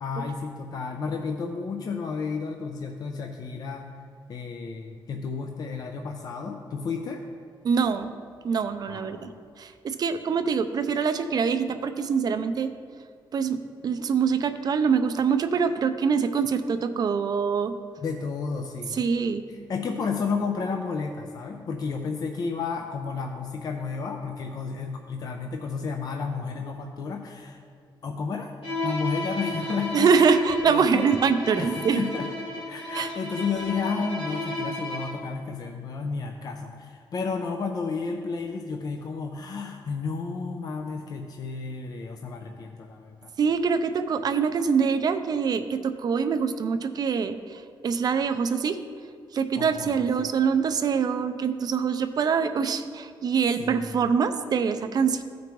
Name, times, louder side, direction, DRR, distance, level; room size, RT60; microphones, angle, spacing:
voice 1, 0.0-3.9 4.3-7.2 8.9-9.4 18.0-19.0 19.5-27.6 28.0-28.5 28.8-30.1 30.6-31.1 31.6-32.3 32.6-43.3 49.6-50.4 53.6-53.8, left 5 dB, 45° left, 3 dB, 0.5 m, -32 dB
voice 2, 7.6-8.1 8.4-9.3 9.6-12.7 13.3-17.7 18.9-19.4 29.9-32.0 32.9-33.1 43.4-48.8 49.3-55.2, right 6 dB, 50° right, 10 dB, 0.5 m, -24 dB
Bowed string instrument, 28.6-35.3, left 1 dB, 80° left, 1.9 m, -33 dB
15.5 x 5.2 x 3.0 m, 2.1 s
wide cardioid pair, 150°, 9 cm